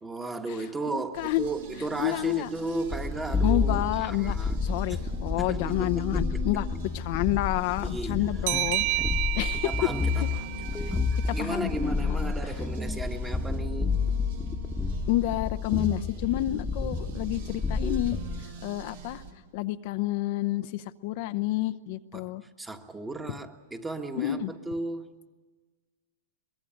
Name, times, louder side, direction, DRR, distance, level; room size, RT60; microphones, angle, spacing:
voice 1, 0.0-4.6 4.9-5.0 5.4-6.4 7.8-9.0 9.6-10.5 10.9-14.0 22.1-22.3 22.6-25.1, right 2 dB, 10° right, 6 dB, 1.6 m, -35 dB
voice 2, 0.9-1.5 2.0-2.5 3.4-6.7 6.9-8.8 9.4-9.7 10.8-10.9 11.3-12.3 15.1-18.2 18.6-19.2 19.5-22.4 24.2-24.5, left 16 dB, 55° left, 10 dB, 0.7 m, -29 dB
sound 1, 1.1-19.3, right 5 dB, 75° right, 3.7 m, -44 dB
sound 2, 2.9-18.4, left 4 dB, 5° left, 1.3 m, -30 dB
sound 3, 8.5-11.8, right 19 dB, 55° right, 0.7 m, -31 dB
23.5 x 21.0 x 9.2 m, 1.3 s
hypercardioid pair, 130°, 0 cm